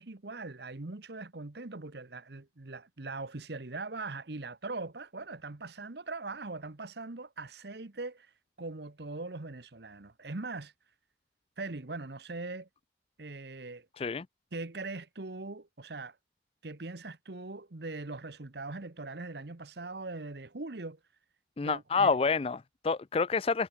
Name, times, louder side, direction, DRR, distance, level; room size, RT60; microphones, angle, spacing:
voice 1, 0.0-8.3 8.6-10.7 11.6-12.7 13.2-13.9 14.5-16.2 16.6-21.0 21.6-22.2, right 3 dB, 60° right, 1.1 m, -41 dB
voice 2, 21.6-23.7, left 4 dB, 30° left, 0.4 m, -28 dB
head